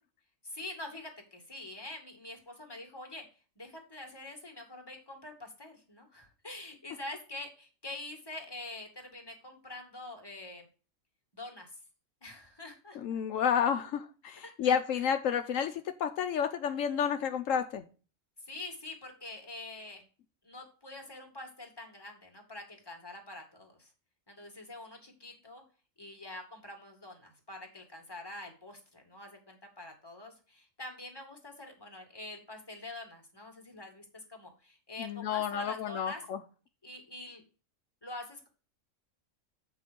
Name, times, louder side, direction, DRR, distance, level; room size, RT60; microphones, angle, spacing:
voice 1, 0.4-3.2 3.6-10.7 11.3-11.7 12.2-13.0 14.4-14.8 18.4-20.0 20.4-23.9 24.3-25.6 26.0-36.2 36.8-37.4 38.0-38.5, left 2 dB, 20° left, 3 dB, 2.2 m, -45 dB
voice 2, 13.0-17.8 35.0-36.4, left 8 dB, 80° left, 8 dB, 1.1 m, -30 dB
8.4 x 4.6 x 5.1 m, 0.36 s
omnidirectional pair, 1.4 m